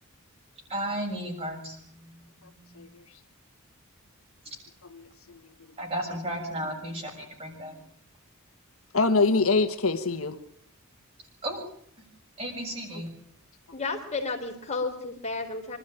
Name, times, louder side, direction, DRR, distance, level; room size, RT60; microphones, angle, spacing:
voice 1, 0.7-1.8 2.4-2.8 5.8-7.7 11.4-11.6 12.4-13.1, right 1 dB, 30° right, 1 dB, 6.7 m, -34 dB
voice 2, 4.8-5.4 5.7-5.8 8.9-10.4 12.9-13.1, left 3 dB, 70° left, 8 dB, 1.5 m, -25 dB
voice 3, 13.7-15.8, left 3 dB, 30° left, 3 dB, 3.8 m, -32 dB
26.0 x 13.0 x 9.2 m, 0.68 s
head